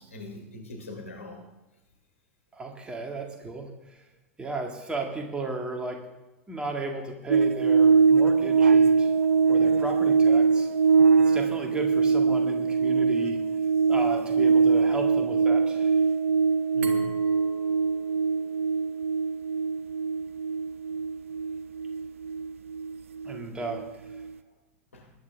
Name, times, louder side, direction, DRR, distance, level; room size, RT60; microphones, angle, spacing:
voice 1, 0.0-1.4 16.7-17.2 24.9-25.1, left 2 dB, 75° left, 0 dB, 3.3 m, -41 dB
voice 2, 2.5-3.7 4.4-6.0 6.5-9.1 9.5-10.7 11.2-13.4 13.9-15.9 23.2-23.8, right 3 dB, 15° right, 2 dB, 2.1 m, -34 dB
sound 1, 7.3-23.8 24.1-24.3, right 5 dB, 70° right, 0.5 m, -22 dB
Glass, 16.8-19.6, right 3 dB, 40° right, 2.2 m, -43 dB
20.5 x 10.5 x 3.5 m, 1.0 s
figure-of-eight pair, 90°, 7 cm